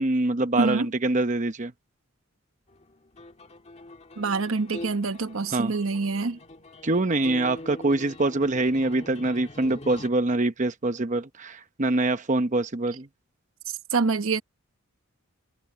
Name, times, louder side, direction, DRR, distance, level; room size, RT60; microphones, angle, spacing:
voice 1, 0.0-1.7 5.5-5.7 6.8-13.1, right 2 dB, 35° right, 0.9 m, -25 dB
voice 2, 0.6-0.9 4.2-6.4 13.9-14.4, right 4 dB, 70° right, 1.1 m, -26 dB
sound 1, 2.7-10.1, left 1 dB, 30° left, 2.1 m, -43 dB
head